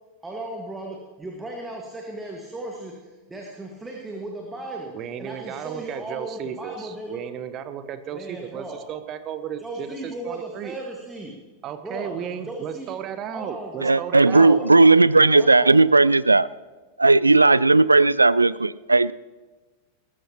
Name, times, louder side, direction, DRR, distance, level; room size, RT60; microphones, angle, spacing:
voice 1, 0.2-7.3 8.1-8.8 9.6-11.4 11.8-13.0 13.3-15.0 15.3-15.8, right 1 dB, 10° right, 0 dB, 1.8 m, -36 dB
voice 2, 4.9-10.8 11.6-14.6, right 9 dB, 35° right, 10 dB, 1.0 m, -34 dB
voice 3, 13.8-16.5 17.0-19.1, right 3 dB, 80° right, 19 dB, 0.3 m, -16 dB
20.0 x 13.5 x 3.0 m, 1.3 s
figure-of-eight pair, 90°, 0 cm